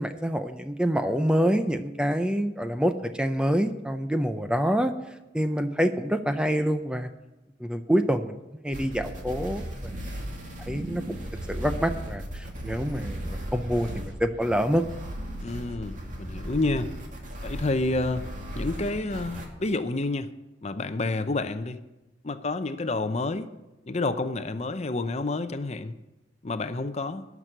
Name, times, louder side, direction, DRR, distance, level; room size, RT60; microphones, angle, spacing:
voice 1, 0.0-4.9 5.3-7.1 7.6-8.4 8.6-9.9 10.7-11.2 11.5-14.8, equal, 5° right, 8 dB, 0.5 m, -26 dB
sound 1, 8.7-19.5, equal, 45° right, 2.2 m, -36 dB
voice 2, 15.4-16.9 17.4-18.2 18.5-20.3 20.6-21.8 22.2-23.5 23.9-26.0 26.4-27.2, left 2 dB, 35° left, 10 dB, 0.7 m, -29 dB
12.5 x 6.1 x 9.1 m, 1.0 s
head